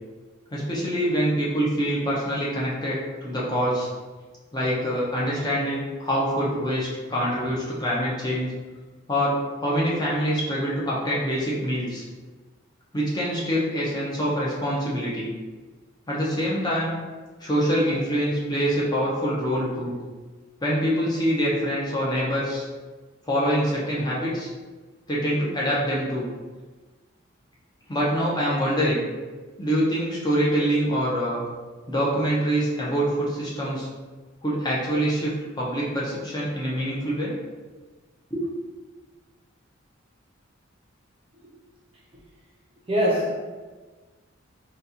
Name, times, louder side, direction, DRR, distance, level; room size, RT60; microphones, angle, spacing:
voice 1, 0.5-3.9 4.5-8.5 9.1-12.0 12.9-15.3 16.1-17.0 17.4-20.0 20.6-22.7 23.3-24.5 25.1-26.3 27.9-29.0 29.6-31.4 31.9-33.9 34.4-37.3 38.3-38.4, equal, 20° left, -6 dB, 0.6 m, -25 dB
voice 2, 42.9-43.3, equal, 25° right, -4 dB, 0.5 m, -22 dB
4.0 x 2.3 x 2.8 m, 1.3 s
head